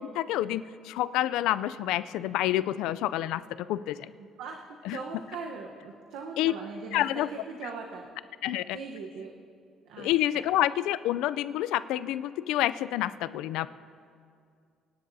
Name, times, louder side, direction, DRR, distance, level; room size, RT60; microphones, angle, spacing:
voice 1, 0.1-4.1 4.8-5.0 6.4-6.5 6.9-7.3 8.4-8.8 10.0-13.7, left 13 dB, 85° left, 15 dB, 0.3 m, -28 dB
voice 2, 4.2-7.0 7.3-8.1 8.7-9.3 9.9-10.1 10.3-10.5, right 4 dB, 85° right, 1 dB, 0.9 m, -40 dB
27.0 x 10.0 x 2.7 m, 2.3 s
cardioid pair, 120°, 0 cm